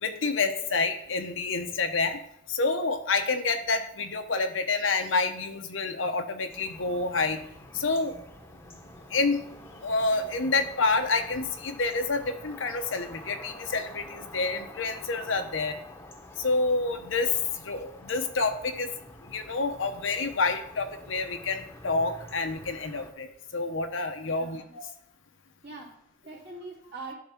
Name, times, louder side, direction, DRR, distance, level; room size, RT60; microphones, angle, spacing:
voice 1, 0.0-2.2 2.5-7.4 7.7-8.2 9.1-9.4 9.8-15.8 16.4-17.4 17.6-18.9 19.2-24.9, left 3 dB, 80° left, 7 dB, 0.9 m, -28 dB
sound 1, 6.5-23.1, left 1 dB, 15° left, 0.9 m, -48 dB
voice 2, 24.2-24.7 25.6-27.1, right 3 dB, 60° right, -4 dB, 2.7 m, -43 dB
10.5 x 3.6 x 5.8 m, 0.74 s
head